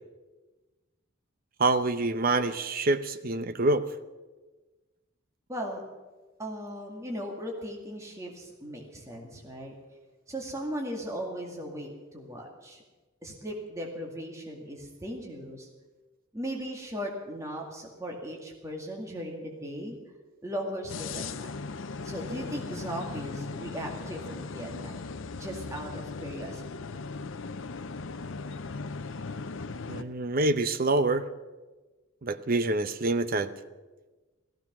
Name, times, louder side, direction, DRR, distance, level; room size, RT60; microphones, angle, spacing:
voice 1, 1.6-3.8 29.9-31.3 32.2-33.5, right 2 dB, 45° right, 10 dB, 0.8 m, -26 dB
voice 2, 5.5-5.8 6.4-9.7 10.3-12.8 13.2-15.7 16.3-20.0 20.4-21.5 22.0-25.1 25.3-26.7, equal, 15° right, 0 dB, 2.1 m, -37 dB
sound 1, 20.9-30.0, left 4 dB, 65° left, 0.7 m, -38 dB
16.0 x 14.5 x 6.1 m, 1.2 s
head